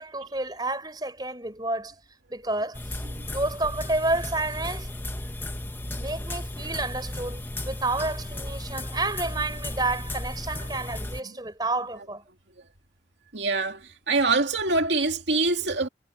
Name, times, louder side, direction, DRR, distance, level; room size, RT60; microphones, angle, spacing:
voice 1, 0.0-1.9 2.3-2.8 3.3-4.9 5.9-12.2, right 2 dB, 25° right, 4.3 m, -30 dB
sound 1, 2.7-11.2, left 1 dB, 10° left, 1.0 m, -35 dB
voice 2, 13.3-15.9, right 3 dB, 75° right, 2.4 m, -24 dB
head